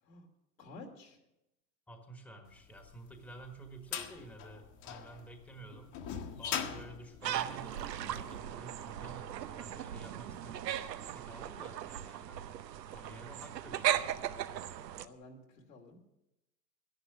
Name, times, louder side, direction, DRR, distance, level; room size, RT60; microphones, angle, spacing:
voice 1, 0.6-1.2 15.0-16.0, left 2 dB, 90° left, 1 dB, 2.9 m, -52 dB
voice 2, 1.9-5.9 6.4-12.4 12.9-14.1, right 2 dB, 5° left, 5 dB, 1.4 m, -51 dB
sound 1, 2.8-8.2, left 8 dB, 35° left, 1.3 m, -41 dB
sound 2, 7.2-15.1, right 11 dB, 85° right, 0.9 m, -37 dB
12.5 x 10.5 x 6.1 m, 0.90 s
hypercardioid pair, 125°, 49 cm